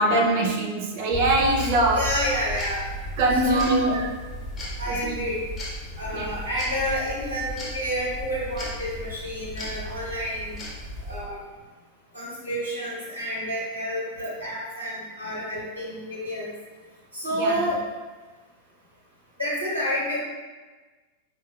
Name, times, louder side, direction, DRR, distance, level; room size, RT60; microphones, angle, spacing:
voice 1, 0.0-2.1 3.2-4.1 4.9-5.2 6.1-6.3 17.3-17.6, right 1 dB, 50° right, -1 dB, 0.6 m, -23 dB
sound 1, 1.1-11.2, left 1 dB, 20° left, 0.8 m, -35 dB
voice 2, 1.9-2.8 3.4-4.0 4.8-5.4 6.0-10.6 11.1-11.4 12.1-16.5 17.1-17.8 19.4-20.2, equal, 90° right, -7 dB, 1.0 m, -29 dB
4.4 x 2.2 x 2.3 m, 1.3 s
figure-of-eight pair, 90°, 0 cm